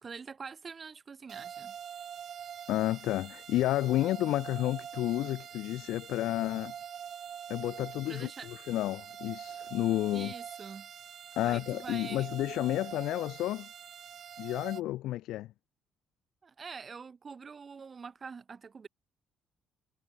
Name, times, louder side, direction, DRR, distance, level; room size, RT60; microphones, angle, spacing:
voice 1, 0.0-1.8 8.1-8.5 10.1-10.9 11.4-12.3 16.4-18.9, right 5 dB, 35° right, 3.2 m, -45 dB
sound 1, 1.3-14.8, right 8 dB, 55° right, 3.3 m, -45 dB
voice 2, 2.7-6.7 7.5-10.3 11.4-13.7 14.4-15.5, left 15 dB, 80° left, 1.9 m, -31 dB
cardioid pair, 85°, 0 cm